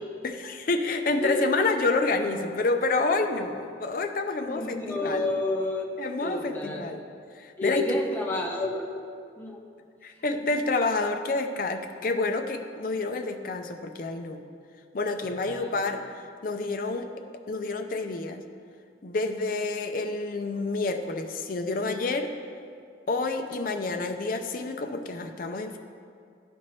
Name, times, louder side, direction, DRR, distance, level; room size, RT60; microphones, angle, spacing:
voice 1, 0.2-5.3 6.0-7.0 7.3-8.0 10.0-14.4 14.9-16.0 16.4-18.4 19.0-22.3 23.1-25.8, left 3 dB, 50° left, 6 dB, 0.5 m, -28 dB
voice 2, 4.5-5.9 6.2-6.9 7.6-8.9 9.4-9.6 15.1-15.7, left 2 dB, 10° left, -2 dB, 0.7 m, -30 dB
12.0 x 4.4 x 3.1 m, 2.3 s
head